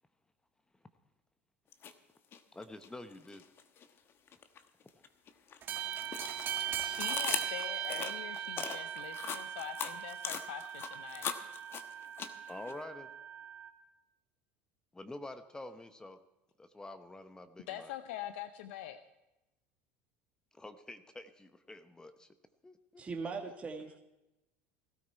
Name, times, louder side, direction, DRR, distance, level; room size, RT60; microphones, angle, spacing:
sound 1, 1.7-1.9 2.3-3.9 4.3-12.7, left 7 dB, 40° left, 1.2 m, -40 dB
voice 1, 2.5-3.4 12.5-13.1 14.9-16.2 16.6-17.9 20.5-22.3 22.6-23.0, left 2 dB, 10° left, 10 dB, 0.9 m, -47 dB
sound 2, 5.6-13.7, right 10 dB, 40° right, 2.1 m, -39 dB
voice 2, 6.8-11.3 17.7-19.0, left 11 dB, 80° left, 10 dB, 0.7 m, -44 dB
voice 3, 23.0-24.0, right 4 dB, 20° right, 2 dB, 1.6 m, -40 dB
16.5 x 13.0 x 4.6 m, 0.96 s
supercardioid pair, 95°, 6 cm